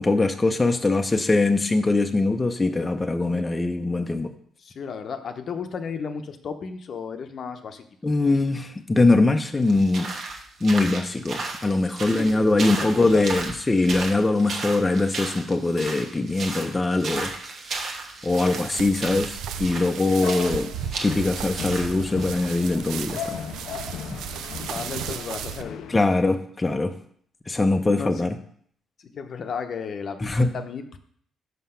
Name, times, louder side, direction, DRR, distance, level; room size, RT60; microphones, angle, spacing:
voice 1, 0.0-4.3 8.0-10.1 10.6-17.3 18.2-20.7 21.0-23.4 25.9-26.9 27.5-28.4 30.2-30.5, left 2 dB, 20° left, 6 dB, 0.6 m, -22 dB
voice 2, 4.6-7.8 12.2-13.4 20.0-20.2 24.7-25.9 28.0-28.3 29.0-31.0, left 6 dB, 55° left, 7 dB, 0.7 m, -34 dB
sound 1, 9.6-22.4, right 3 dB, 60° right, 1.3 m, -35 dB
sound 2, 18.3-25.6, right 8 dB, 85° right, 0.5 m, -35 dB
sound 3, 20.2-26.0, left 8 dB, 85° left, 0.5 m, -37 dB
5.7 x 5.6 x 5.6 m, 0.63 s
cardioid pair, 90°, 0 cm